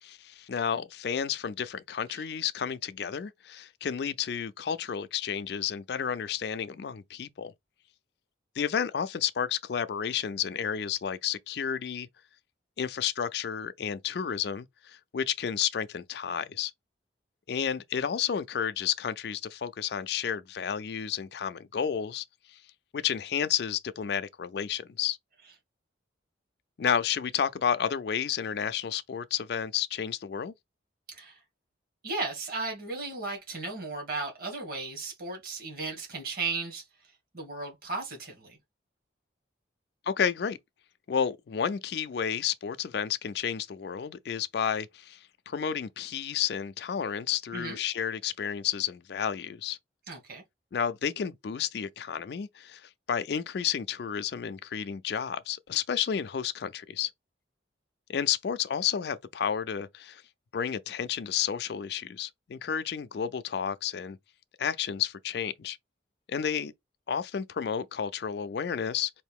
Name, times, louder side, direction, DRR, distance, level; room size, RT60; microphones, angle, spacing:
voice 1, 0.0-7.5 8.6-12.1 12.8-16.7 17.5-22.6 22.9-25.2 26.8-30.5 40.1-40.6 41.1-45.2 45.5-49.8 50.7-57.1 58.1-60.2 60.5-64.2 64.6-65.8 66.3-66.7 67.1-69.1, left 8 dB, 60° left, 0.4 m, -31 dB
voice 2, 31.1-31.4 32.0-36.8 37.3-38.6 47.5-47.8 50.1-50.4, right 3 dB, 50° right, 2.1 m, -35 dB
4.3 x 2.6 x 3.5 m
head